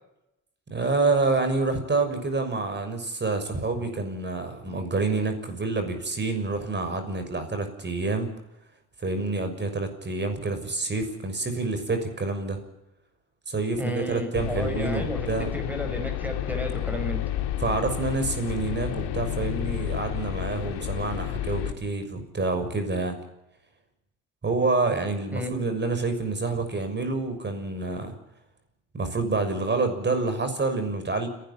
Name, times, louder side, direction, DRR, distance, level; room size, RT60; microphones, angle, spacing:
voice 1, 0.7-8.3 9.0-12.6 13.5-15.5 17.6-23.2 24.4-28.1 28.9-31.3, right 3 dB, 25° right, 7 dB, 6.4 m, -27 dB
voice 2, 13.8-15.3 15.5-17.2 25.3-25.7, equal, 5° right, 7 dB, 5.2 m, -32 dB
sound 1, 14.3-21.7, left 12 dB, 75° left, 3.1 m, -31 dB
29.5 x 12.0 x 8.6 m, 0.89 s
supercardioid pair, 85°, 40 cm